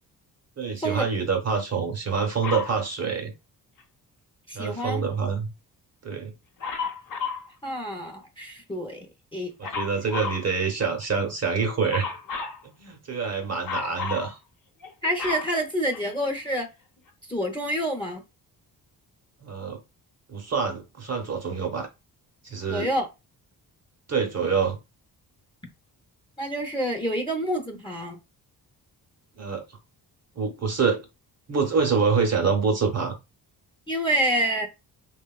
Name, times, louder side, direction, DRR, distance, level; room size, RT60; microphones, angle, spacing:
voice 1, 0.6-3.3 4.5-5.5 6.0-6.3 9.6-12.2 12.6-14.4 19.4-19.8 20.3-21.9 22.4-22.9 24.1-24.8 29.4-29.6 30.4-31.1 31.5-33.1, right 5 dB, 40° right, 0.7 m, -26 dB
Dog, 2.4-2.8 6.6-7.5 9.6-10.5 11.9-12.6 13.6-14.3 14.8-16.3 17.1-17.2, left 5 dB, 55° left, 0.8 m, -32 dB
voice 2, 4.5-5.0 7.6-9.1 9.3-9.5 15.0-16.7 17.3-18.2 22.7-23.1 26.4-28.2 33.9-34.7, right 1 dB, 15° left, 0.7 m, -27 dB
2.8 x 2.2 x 2.3 m
cardioid pair, 80°, 39 cm